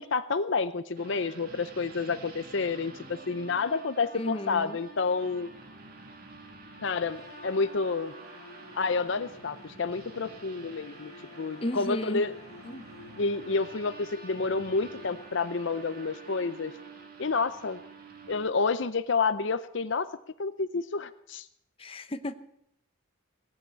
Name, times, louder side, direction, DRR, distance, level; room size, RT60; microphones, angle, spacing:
voice 1, 0.0-5.5 6.8-8.1 8.8-11.1 11.4-12.3 13.2-16.7 17.2-17.8 18.3-20.1 20.4-21.5, left 4 dB, 60° left, 12 dB, 0.6 m, -29 dB
sound 1, 0.9-18.5, right 3 dB, 45° right, 2.0 m, -48 dB
voice 2, 4.1-4.8 11.6-12.2 12.6-12.8 21.8-22.3, left 1 dB, 25° left, 9 dB, 0.8 m, -33 dB
sound 2, 7.0-17.3, left 2 dB, 90° left, 1.7 m, -52 dB
17.5 x 9.6 x 8.3 m, 0.73 s
head